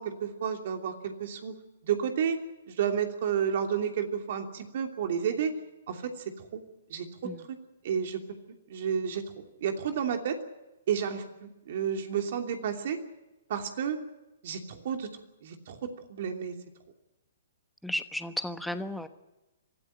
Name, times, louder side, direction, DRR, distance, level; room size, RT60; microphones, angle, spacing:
voice 1, 0.0-1.5 1.8-2.4 2.7-5.5 5.9-6.1 6.4-6.6 6.9-7.1 7.8-8.2 8.7-10.4 10.9-13.0 13.5-14.0 14.4-15.1 15.4-16.5, right 8 dB, 55° right, 5 dB, 2.9 m, -31 dB
voice 2, 17.8-19.1, left 1 dB, ahead, 9 dB, 1.2 m, -34 dB
23.5 x 13.5 x 10.0 m, 1.0 s
hypercardioid pair, 135°, 0 cm